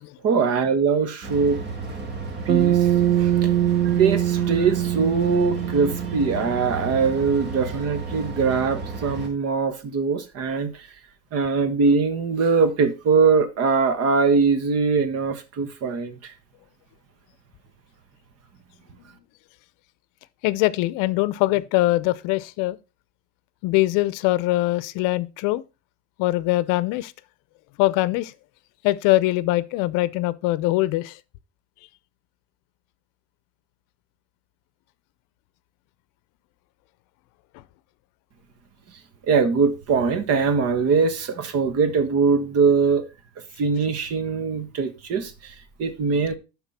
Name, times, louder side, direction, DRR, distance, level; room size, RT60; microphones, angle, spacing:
voice 1, 0.2-1.6 2.4-2.9 3.2-3.5 3.8-10.9 11.3-16.3 39.3-43.0 43.6-46.4, right 5 dB, 45° right, 1.3 m, -22 dB
sound 1, 1.2-9.3, right 4 dB, 30° right, 2.0 m, -33 dB
Bass guitar, 2.5-6.9, right 11 dB, 70° right, 1.4 m, -23 dB
voice 2, 20.4-22.8 23.6-25.6 26.2-27.1 27.8-28.3 28.8-31.2, left 18 dB, 70° left, 0.6 m, -22 dB
11.5 x 4.0 x 4.2 m
cardioid pair, 135°, 33 cm